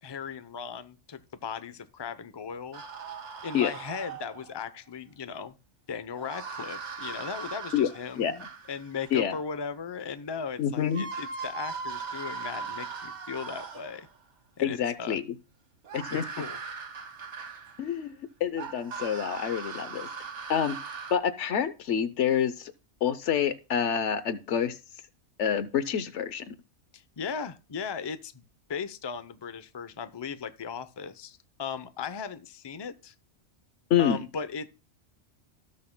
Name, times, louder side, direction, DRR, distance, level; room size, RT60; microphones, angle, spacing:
voice 1, 0.0-2.8 3.4-5.5 5.9-14.1 14.6-15.2 16.4-16.6 26.9-28.4 28.7-33.1 34.0-34.7, left 6 dB, 30° left, 0.6 m, -37 dB
sound 1, 2.7-4.6 6.2-9.2 10.5-10.6 10.9-14.1 15.8-18.0 18.6-21.1, right 5 dB, 75° right, 1.4 m, -39 dB
voice 2, 10.6-11.0 14.6-15.2 15.9-16.2 17.8-20.1 20.5-20.8 21.1-22.7 23.0-24.8 25.4-26.6 33.9-34.2, left 8 dB, 75° left, 1.1 m, -27 dB
18.5 x 6.6 x 2.2 m
omnidirectional pair, 1.2 m